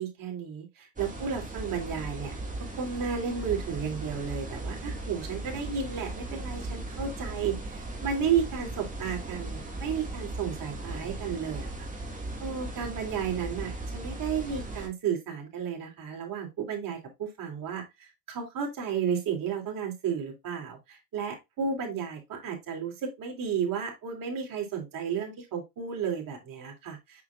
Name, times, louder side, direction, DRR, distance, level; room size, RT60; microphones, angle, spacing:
voice 1, 0.0-2.4 2.8-11.9 12.4-27.2, right 7 dB, 50° right, 1 dB, 3.3 m, -33 dB
sound 1, 1.0-14.9, right 2 dB, 20° right, 2.4 m, -37 dB
6.1 x 6.0 x 2.6 m, 0.20 s
supercardioid pair, 85°, 42 cm